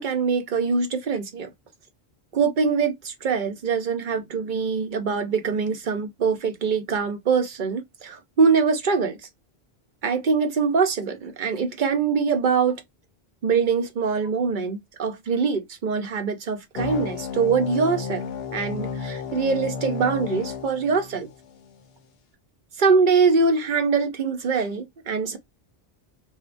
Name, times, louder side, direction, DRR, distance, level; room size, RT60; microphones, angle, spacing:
voice 1, 0.0-1.5 2.3-9.2 10.0-12.8 13.4-21.3 22.8-25.4, right 5 dB, 55° right, 0.7 m, -23 dB
sound 1, 16.7-21.7, left 6 dB, 75° left, 0.9 m, -33 dB
2.6 x 2.2 x 2.4 m
omnidirectional pair, 1.0 m